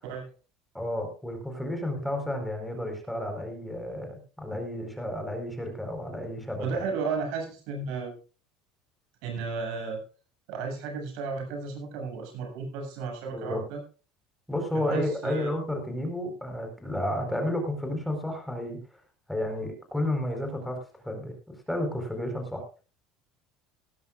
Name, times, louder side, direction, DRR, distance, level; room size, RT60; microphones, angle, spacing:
voice 1, 0.7-6.9 13.3-13.6 14.5-18.8 19.3-20.8 21.0-21.4 21.7-22.7, left 1 dB, ahead, 4 dB, 4.5 m, -31 dB
voice 2, 6.6-8.2 9.2-10.0 10.5-13.8 14.7-15.5, right 4 dB, 70° right, 3 dB, 7.4 m, -33 dB
18.0 x 15.0 x 2.4 m, 0.35 s
cardioid pair, 150°, 0 cm